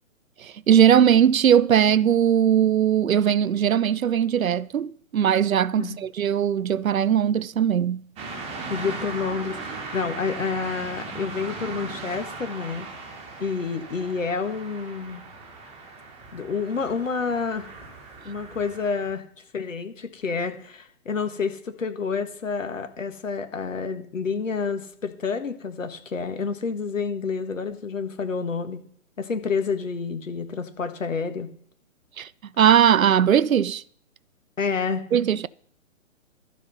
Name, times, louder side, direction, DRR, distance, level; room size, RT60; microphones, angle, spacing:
voice 1, 0.4-8.0 32.2-32.3 32.6-33.8 35.1-35.5, right 9 dB, 85° right, 0.5 m, -19 dB
sound 1, 8.2-19.1, right 3 dB, 15° right, 1.4 m, -38 dB
voice 2, 8.7-12.9 13.4-15.2 16.3-17.7 18.2-19.2 19.5-28.8 29.2-31.5 34.6-35.0, left 5 dB, 70° left, 1.6 m, -29 dB
12.5 x 5.1 x 5.6 m
figure-of-eight pair, 130°, 40 cm